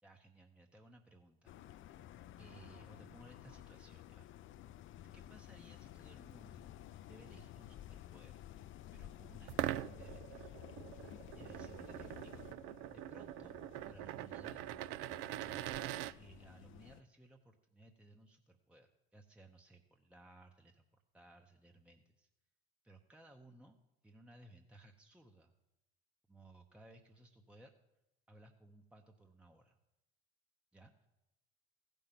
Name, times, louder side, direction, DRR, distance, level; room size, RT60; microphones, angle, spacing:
voice 1, 0.0-1.6 2.4-4.3 5.1-8.4 8.9-10.6 11.4-12.5 12.9-14.6 15.4-15.7 16.2-22.3 22.8-23.8 24.0-25.5 26.3-27.7 28.3-29.8 30.7-31.1, right 2 dB, 5° right, 3 dB, 0.8 m, -60 dB
sound 1, 1.5-17.0, left 12 dB, 40° left, 0.5 m, -54 dB
sound 2, 9.5-16.1, right 14 dB, 55° right, 0.4 m, -43 dB
15.5 x 5.3 x 5.8 m, 0.92 s
hypercardioid pair, 70°, 32 cm